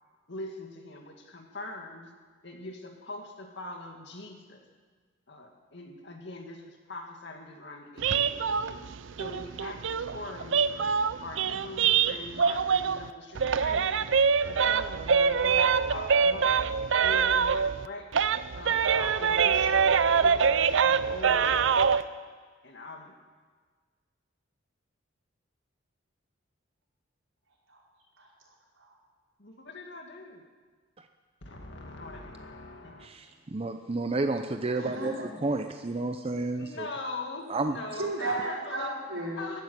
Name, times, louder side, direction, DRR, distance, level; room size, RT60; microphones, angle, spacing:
voice 1, 0.3-2.1 2.4-4.7 5.3-8.8 9.2-10.9 11.2-14.1 14.4-16.6 17.0-18.1 18.5-22.0 22.6-23.2 29.4-30.4 31.4-33.1 36.6-38.9 39.4-39.6, left 2 dB, 60° left, 3 dB, 2.2 m, -42 dB
sound 1, 8.0-13.1 13.4-17.9 18.1-22.0, right 6 dB, 70° right, 0.5 m, -25 dB
voice 2, 28.2-28.9 34.8-35.4 37.9-39.4, right 2 dB, 90° right, -4 dB, 5.0 m, -35 dB
voice 3, 33.0-35.1 35.4-36.9 37.5-37.8, right 2 dB, 30° right, 6 dB, 0.6 m, -31 dB
14.5 x 10.0 x 9.5 m, 1.5 s
head